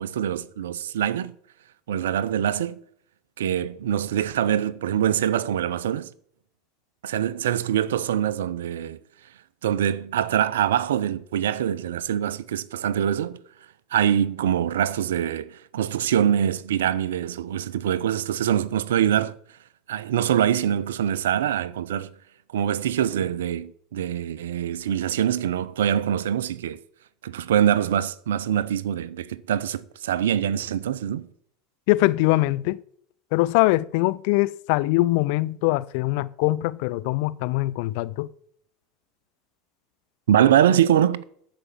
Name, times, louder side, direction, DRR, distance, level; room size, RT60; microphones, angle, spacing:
voice 1, 0.0-1.3 1.9-2.8 3.4-6.1 7.0-9.0 9.6-13.4 13.9-19.4 19.9-22.1 22.5-26.8 27.2-31.3 40.3-41.2, right 10 dB, 75° right, 0.5 m, -24 dB
voice 2, 31.9-32.8 33.3-38.3, left 19 dB, 60° left, 0.5 m, -22 dB
12.5 x 5.2 x 7.2 m
hypercardioid pair, 75°, 0 cm